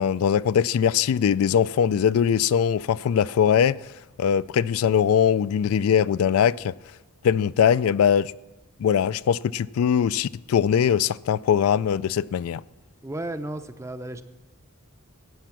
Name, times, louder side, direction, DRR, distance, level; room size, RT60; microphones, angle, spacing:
voice 1, 0.0-3.9 4.2-6.7 7.2-8.3 8.8-12.6, left 8 dB, 70° left, 0.3 m, -21 dB
voice 2, 13.0-14.2, right 1 dB, 15° right, 0.5 m, -33 dB
13.5 x 9.0 x 5.8 m
head